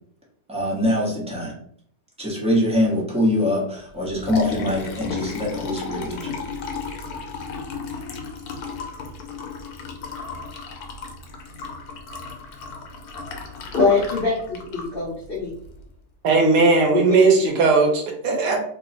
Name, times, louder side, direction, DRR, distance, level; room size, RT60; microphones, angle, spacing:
voice 1, 0.5-1.5 2.2-6.3, left 1 dB, 5° right, -4 dB, 0.5 m, -23 dB
Liquid, 3.9-15.8, left 4 dB, 75° left, 1.1 m, -34 dB
voice 2, 13.7-15.5 16.9-17.5, left 4 dB, 45° left, -6 dB, 0.8 m, -23 dB
voice 3, 16.2-18.6, right 4 dB, 85° right, 2 dB, 1.3 m, -18 dB
3.0 x 2.0 x 4.0 m, 0.64 s
omnidirectional pair, 1.7 m